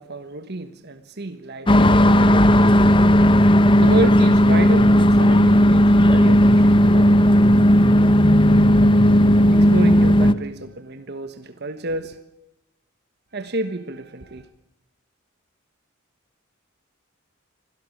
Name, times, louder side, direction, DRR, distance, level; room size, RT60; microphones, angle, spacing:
voice 1, 0.0-2.5 3.8-7.2 9.5-12.2 13.3-14.5, right 2 dB, 50° right, 9 dB, 1.3 m, -30 dB
sound 1, 1.7-10.3, equal, 25° left, 1.0 m, -14 dB
26.0 x 17.0 x 8.5 m, 0.88 s
head